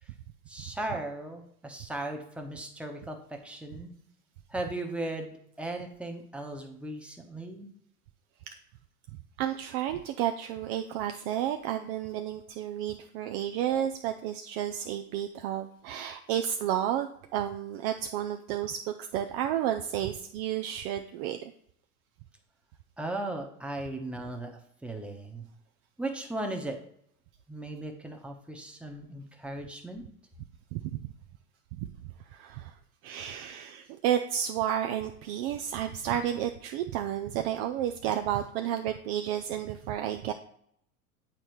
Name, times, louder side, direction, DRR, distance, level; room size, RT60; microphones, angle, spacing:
voice 1, 0.5-3.9 4.5-7.7 23.0-25.4 26.0-26.8 27.5-30.0, right 2 dB, ahead, 2 dB, 1.0 m, -37 dB
voice 2, 9.4-21.5 30.7-31.1 31.8-31.9 32.3-32.7 33.0-40.3, right 10 dB, 40° right, 6 dB, 0.5 m, -31 dB
9.0 x 4.2 x 3.1 m, 0.69 s
hypercardioid pair, 90°, 46 cm